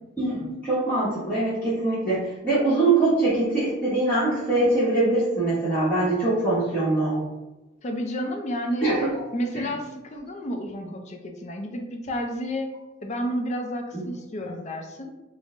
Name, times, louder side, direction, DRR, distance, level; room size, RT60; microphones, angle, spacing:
voice 1, 0.2-7.2 8.8-9.1 9.5-9.6, right 2 dB, 10° left, -12 dB, 1.0 m, -23 dB
voice 2, 7.8-8.9 9.3-12.7 13.0-15.1, equal, 35° left, 3 dB, 0.4 m, -31 dB
3.6 x 2.0 x 3.7 m, 1.1 s
head